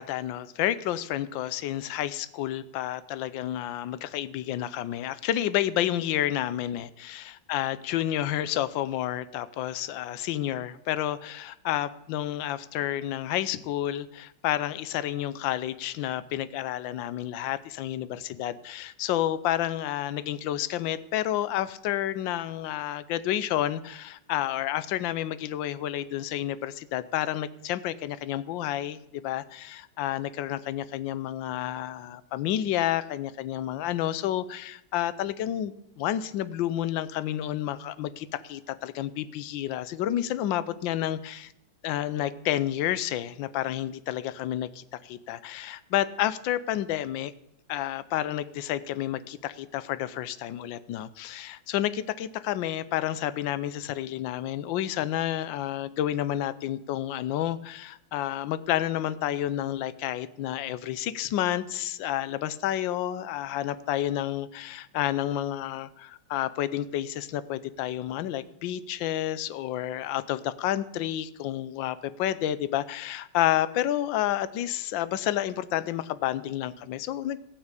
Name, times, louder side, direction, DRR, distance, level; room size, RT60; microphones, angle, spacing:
voice 1, 0.0-41.5 41.8-47.3 47.7-77.4, left 12 dB, 70° left, 15 dB, 1.4 m, -30 dB
16.5 x 6.2 x 8.3 m, 0.79 s
omnidirectional pair, 2.2 m